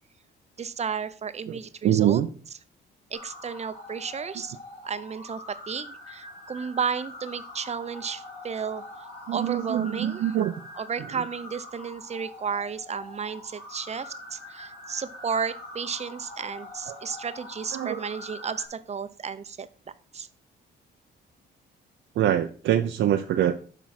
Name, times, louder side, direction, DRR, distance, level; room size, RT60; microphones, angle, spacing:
voice 1, 0.6-2.2 3.1-4.6 4.8-10.2 10.8-19.7 20.1-20.3, right 6 dB, 35° right, 14 dB, 0.7 m, -33 dB
voice 2, 1.5-2.3 9.3-10.5 16.9-17.0 17.7-18.0 22.1-23.5, right 11 dB, 70° right, 6 dB, 0.6 m, -24 dB
sound 1, 3.1-18.7, left 2 dB, 55° left, 4.8 m, -44 dB
12.0 x 4.5 x 4.3 m, 0.42 s
cardioid pair, 90°, 20 cm